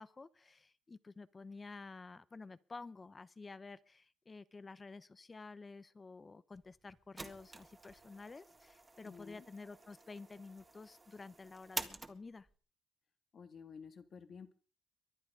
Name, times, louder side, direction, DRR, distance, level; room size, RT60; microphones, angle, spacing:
voice 1, 0.0-12.5, left 3 dB, 30° left, 17 dB, 0.8 m, -51 dB
sound 1, 6.5-12.6, right 3 dB, 20° right, 1.8 m, -49 dB
voice 2, 9.0-9.5 13.3-14.5, left 6 dB, 50° left, 10 dB, 2.0 m, -52 dB
23.5 x 8.9 x 5.0 m, 0.39 s
cardioid pair, 90°, 0 cm